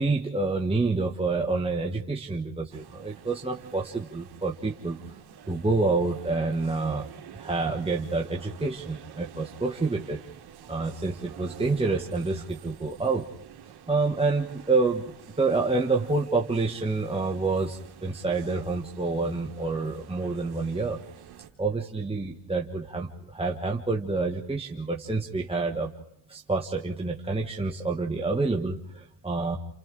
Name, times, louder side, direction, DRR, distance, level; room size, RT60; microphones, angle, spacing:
voice 1, 0.0-5.0 5.5-7.1 7.3-10.2 10.7-13.2 13.9-15.0 15.4-21.0 21.6-25.9 26.3-29.6, right 3 dB, 15° right, 0 dB, 1.3 m, -28 dB
sound 1, 2.7-21.5, right 9 dB, 60° right, 2.1 m, -48 dB
29.0 x 28.5 x 3.8 m, 0.84 s
supercardioid pair, 75°, 44 cm